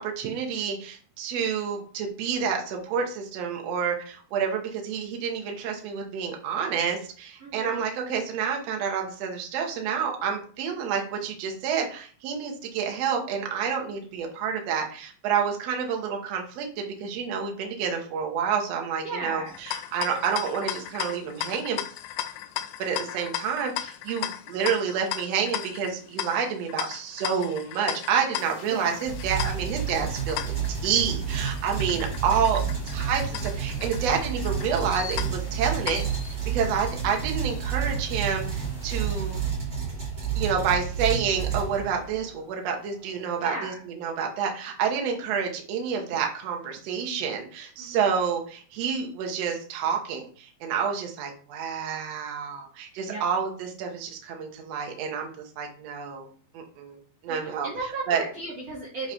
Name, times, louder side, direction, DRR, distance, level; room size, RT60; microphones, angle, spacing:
voice 1, 0.0-21.8 22.8-30.4 30.8-39.4 40.3-55.3 55.6-56.3 56.5-57.0 57.2-57.7 58.1-58.2 59.0-59.1, right 6 dB, 75° right, 2 dB, 1.5 m, -29 dB
voice 2, 7.4-7.8 19.0-19.5 28.7-29.0 32.3-32.4 43.4-43.8 47.8-48.0 53.1-53.2 57.3-59.1, right 3 dB, 50° right, -6 dB, 2.1 m, -35 dB
sound 1, 19.5-36.4, left 12 dB, 80° left, 2.4 m, -36 dB
sound 2, 28.4-39.5, left 2 dB, 25° left, 0.8 m, -45 dB
sound 3, 29.0-42.2, right 7 dB, 30° right, 1.7 m, -30 dB
8.0 x 3.2 x 5.0 m, 0.43 s
omnidirectional pair, 4.8 m